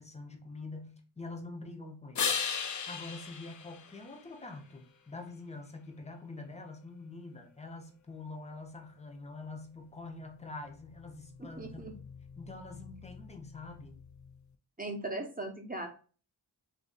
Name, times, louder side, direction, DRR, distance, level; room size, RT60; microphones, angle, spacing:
voice 1, 0.0-2.3 2.9-12.0 12.4-13.9, left 3 dB, 15° left, 0.7 m, -45 dB
sound 1, 2.1-4.7 10.5-14.4, left 6 dB, 45° left, 0.4 m, -39 dB
voice 2, 11.6-11.9 14.8-15.9, right 2 dB, 20° right, 0.8 m, -38 dB
2.7 x 2.6 x 3.9 m
cardioid pair, 40°, 44 cm